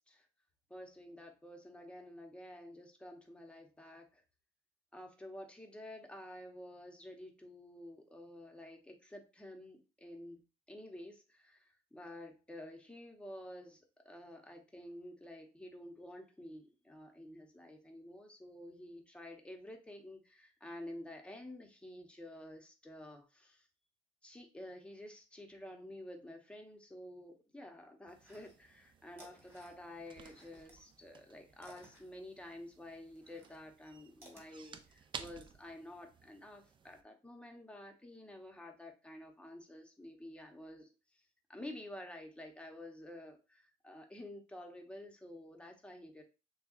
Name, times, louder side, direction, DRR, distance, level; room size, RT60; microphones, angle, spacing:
voice 1, 0.7-4.2 4.9-10.4 10.7-23.7 24.2-40.9 41.5-46.2, left 1 dB, 5° left, 3 dB, 0.9 m, -50 dB
sound 1, 28.1-37.0, right 6 dB, 30° right, 0.4 m, -55 dB
sound 2, 28.2-28.8 29.1-30.8 31.1-34.5, right 1 dB, 15° right, 1.6 m, -60 dB
6.6 x 2.3 x 2.5 m, 0.31 s
cardioid pair, 110°, 17 cm